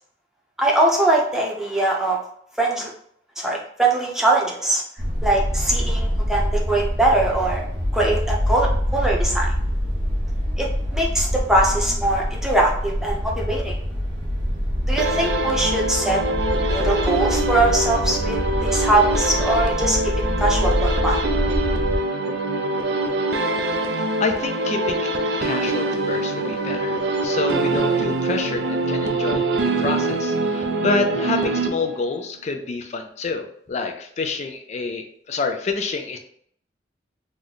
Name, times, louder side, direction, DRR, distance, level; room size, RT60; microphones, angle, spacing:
voice 1, 0.6-2.2 2.6-2.9 3.4-4.8 5.2-7.6 7.9-9.5 10.6-13.7 14.9-16.2 16.7-20.0 20.4-21.2, right 2 dB, 5° right, -2 dB, 0.7 m, -21 dB
sound 1, 5.0-22.0, equal, 50° right, 0.9 m, -25 dB
sound 2, 15.0-32.2, right 2 dB, 65° right, 0.4 m, -24 dB
voice 2, 23.7-36.2, left 4 dB, 40° left, 5 dB, 0.4 m, -28 dB
3.1 x 2.1 x 3.8 m, 0.63 s
head